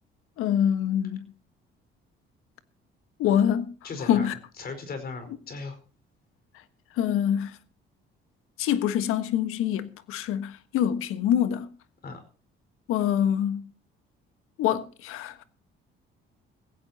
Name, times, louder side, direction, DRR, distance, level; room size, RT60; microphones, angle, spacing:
voice 1, 0.4-1.3 3.2-3.7 4.1-4.3 7.0-7.5 8.6-11.7 12.9-13.6 14.6-15.4, left 9 dB, 85° left, 1.5 m, -25 dB
voice 2, 3.8-4.3 4.6-5.8 12.0-12.2, left 4 dB, 45° left, 4.9 m, -37 dB
17.5 x 16.5 x 2.9 m
cardioid pair, 110°, 21 cm